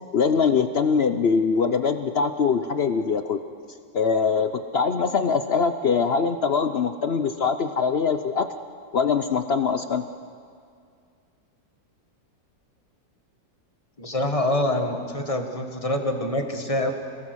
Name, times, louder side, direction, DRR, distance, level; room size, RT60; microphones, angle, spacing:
voice 1, 0.1-3.4 3.9-8.5 8.9-10.0, left 5 dB, 65° left, 9 dB, 0.6 m, -22 dB
voice 2, 14.0-16.9, left 1 dB, 20° left, 4 dB, 1.6 m, -25 dB
28.0 x 18.5 x 6.3 m, 2.3 s
omnidirectional pair, 2.0 m